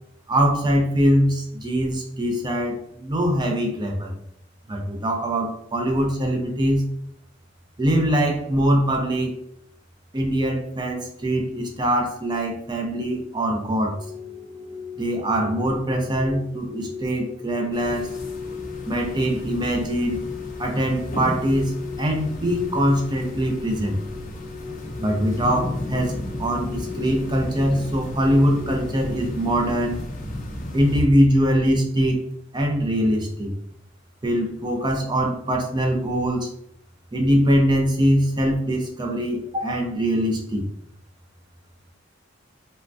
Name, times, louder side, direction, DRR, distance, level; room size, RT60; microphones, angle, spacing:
voice 1, 0.3-4.2 4.7-6.9 7.8-9.4 10.1-14.0 15.0-18.1 18.9-20.2 20.6-24.0 25.0-30.0 30.7-32.2 32.5-33.5 34.2-36.5 37.1-40.7, equal, 25° right, 1 dB, 0.5 m, -22 dB
sound 1, 13.9-29.2, left 6 dB, 65° right, 1.0 m, -38 dB
sound 2, 17.7-31.0, left 1 dB, 45° left, 0.5 m, -34 dB
3.3 x 2.1 x 2.5 m, 0.73 s
head